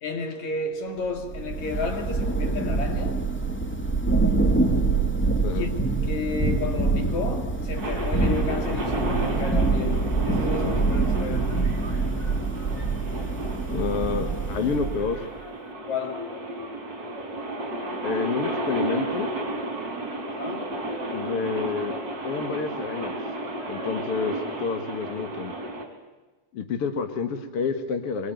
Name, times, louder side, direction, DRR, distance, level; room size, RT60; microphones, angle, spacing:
voice 1, 0.0-3.3 5.5-11.6 15.9-16.5 20.3-20.8, left 4 dB, 65° left, 3.6 m, -32 dB
Thunder / Rain, 1.1-15.2, right 3 dB, 5° left, 1.9 m, -25 dB
sound 1, 7.8-25.9, right 1 dB, 35° right, 4.5 m, -33 dB
voice 2, 13.7-15.3 18.0-19.3 21.1-21.9 22.2-23.2 23.7-25.5 26.5-28.3, left 5 dB, 50° left, 2.4 m, -29 dB
24.5 x 22.0 x 9.3 m
omnidirectional pair, 3.5 m